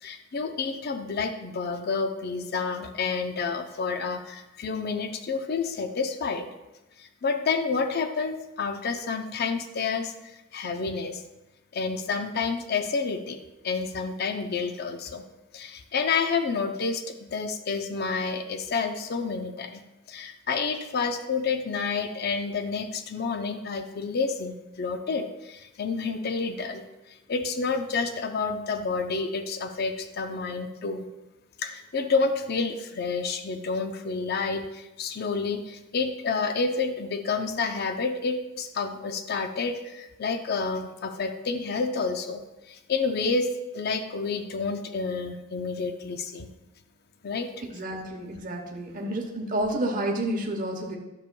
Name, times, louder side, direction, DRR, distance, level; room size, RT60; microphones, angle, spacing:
voice 1, 0.0-6.5 7.0-10.1 10.5-11.2 11.7-13.4 13.6-15.2 15.5-19.8 20.1-26.8 27.3-31.0 31.6-42.4 42.7-43.5 43.7-46.5 47.2-47.5, left 4 dB, 55° left, 7 dB, 0.6 m, -29 dB
voice 2, 47.7-51.0, right 1 dB, 45° right, 0 dB, 0.9 m, -30 dB
10.5 x 6.8 x 2.2 m, 1.0 s
head